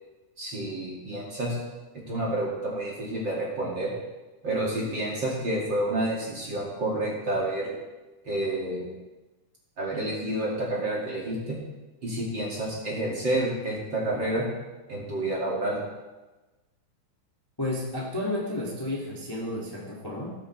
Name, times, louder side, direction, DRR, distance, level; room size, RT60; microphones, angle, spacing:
voice 1, 0.4-1.6 2.1-3.9 4.4-7.7 8.2-8.9 9.8-11.6 12.0-14.5 14.9-15.8, right 1 dB, 35° right, -5 dB, 2.5 m, -29 dB
voice 2, 17.6-20.3, left 1 dB, 10° left, -5 dB, 1.4 m, -32 dB
17.0 x 8.9 x 3.3 m, 1.2 s
omnidirectional pair, 4.0 m